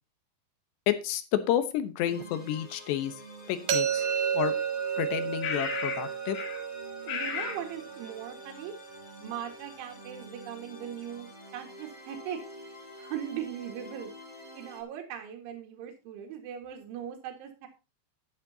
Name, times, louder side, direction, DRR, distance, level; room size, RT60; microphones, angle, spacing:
voice 1, 0.9-3.1 3.5-4.1 4.3-4.5 5.0-6.4, left 11 dB, 75° left, 11 dB, 3.0 m, -30 dB
sound 1, 2.0-14.8, equal, 15° left, 2.2 m, -48 dB
sound 2, 3.7-9.5, right 8 dB, 55° right, 2.3 m, -32 dB
sound 3, 4.0-4.1 5.4-6.1 6.3-6.6 7.1-7.6, left 6 dB, 90° left, 5.0 m, -34 dB
voice 2, 7.0-8.7 9.2-11.3 11.5-12.4 13.0-14.1 14.5-17.7, right 10 dB, 85° right, 3 dB, 4.2 m, -39 dB
11.5 x 11.5 x 2.8 m, 0.30 s
omnidirectional pair, 5.3 m